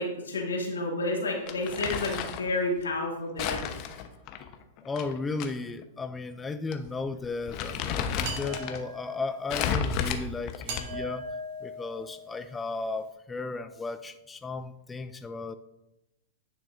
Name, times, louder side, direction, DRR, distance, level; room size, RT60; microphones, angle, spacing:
voice 1, 0.0-3.6, left 2 dB, 85° left, -1 dB, 2.1 m, -30 dB
Crumpling crinkling, 1.5-2.5 3.4-5.5 5.8-5.9 6.7-6.9 7.2-8.8 9.5-11.1, left 7 dB, 45° left, 0.8 m, -32 dB
voice 2, 4.8-11.3 11.6-15.5, left 3 dB, 15° left, 10 dB, 0.4 m, -35 dB
sound 1, 8.2-9.3 10.7-12.5, right 1 dB, 55° right, 2.2 m, -39 dB
10.0 x 6.1 x 2.5 m, 0.89 s
hypercardioid pair, 110°, 0 cm